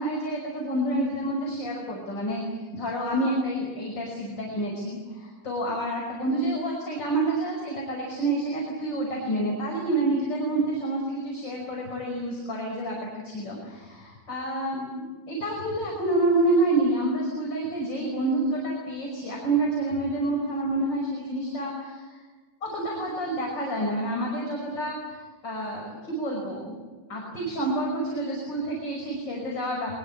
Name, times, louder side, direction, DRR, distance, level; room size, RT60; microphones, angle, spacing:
voice 1, 0.0-2.4 2.7-22.1 22.6-25.2 25.4-26.8 27.1-29.9, right 2 dB, 20° left, -2 dB, 5.8 m, -28 dB
24.0 x 22.0 x 8.5 m, 1.4 s
omnidirectional pair, 5.7 m